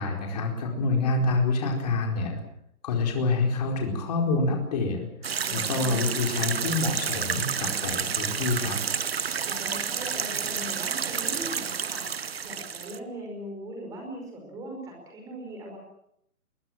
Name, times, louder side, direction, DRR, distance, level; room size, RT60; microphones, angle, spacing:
voice 1, 0.0-2.4 2.8-5.1 5.5-8.8, left 3 dB, 25° left, 2 dB, 4.6 m, -27 dB
sound 1, 5.2-13.0, right 7 dB, 45° right, 1.0 m, -30 dB
voice 2, 5.4-6.0 9.2-12.1 12.4-15.8, right 1 dB, 10° right, 1 dB, 5.1 m, -40 dB
25.0 x 22.5 x 7.5 m, 0.73 s
hypercardioid pair, 175°, 43 cm